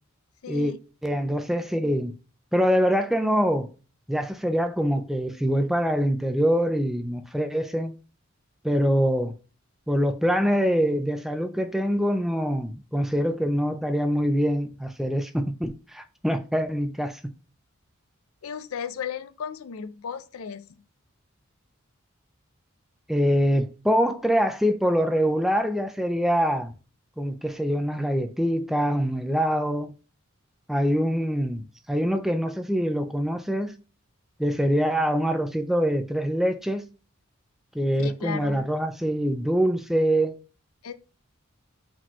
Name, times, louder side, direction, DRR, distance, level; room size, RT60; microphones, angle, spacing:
voice 1, 0.4-0.8 18.4-20.7 38.0-38.7 40.8-40.9, left 7 dB, 85° left, 0.5 m, -35 dB
voice 2, 1.0-2.1 2.5-3.7 4.1-7.9 8.6-9.3 9.9-17.2 23.1-26.7 27.2-30.0 30.7-33.7 34.4-36.8 37.7-40.4, equal, ahead, 0.3 m, -24 dB
4.8 x 3.7 x 3.0 m
head